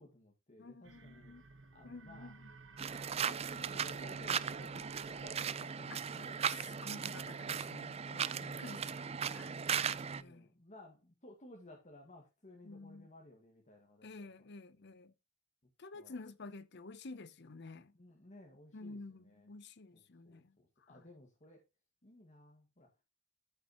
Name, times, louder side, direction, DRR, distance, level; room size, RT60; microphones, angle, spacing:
voice 1, 0.0-1.4 1.7-2.3 3.2-6.4 8.1-9.5 10.1-15.0 15.6-16.2 17.9-19.5 19.9-21.6 22.0-22.9, left 1 dB, 35° left, 1.9 m, -58 dB
voice 2, 0.6-1.4 1.8-2.5 5.9-6.0 6.6-8.0 8.6-8.9 9.3-9.7 10.2-10.5 12.6-13.1 14.0-15.1 15.8-17.9 18.7-20.6 20.9-21.0, left 3 dB, 60° left, 0.8 m, -50 dB
sound 1, 0.8-5.8, right 3 dB, 70° right, 1.4 m, -56 dB
sound 2, 2.8-10.2, right 7 dB, 30° right, 0.4 m, -38 dB
13.5 x 6.7 x 3.0 m
head